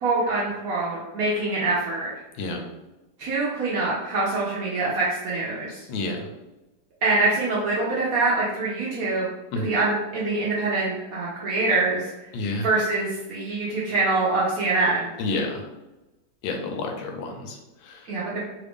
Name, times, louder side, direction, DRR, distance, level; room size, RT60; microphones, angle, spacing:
voice 1, 0.0-2.1 3.2-5.8 7.0-9.3 9.6-12.1 12.6-15.1 18.1-18.4, right 3 dB, 70° right, -6 dB, 0.8 m, -24 dB
voice 2, 5.9-6.3 9.5-9.7 12.3-12.7 15.2-15.7 16.4-18.1, left 2 dB, 85° left, 3 dB, 1.4 m, -30 dB
3.3 x 2.5 x 3.4 m, 1.0 s
omnidirectional pair, 2.1 m